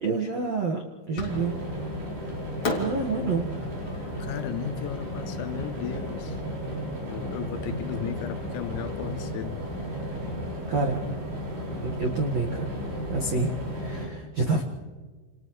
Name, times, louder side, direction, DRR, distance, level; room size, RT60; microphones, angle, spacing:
voice 1, 0.0-0.8 1.1-1.5 2.8-3.5 10.7-11.0 11.8-12.8 13.1-14.6, right 3 dB, 85° right, 0 dB, 1.5 m, -28 dB
Fireworks, 1.2-1.8 2.6-5.8, left 2 dB, 35° left, 2.8 m, -35 dB
sound 1, 1.3-14.1, equal, 50° right, 7.4 m, -34 dB
voice 2, 4.2-6.4 7.1-9.6, left 11 dB, 80° left, 10 dB, 2.8 m, -35 dB
29.0 x 28.5 x 3.2 m, 1.4 s
omnidirectional pair, 5.9 m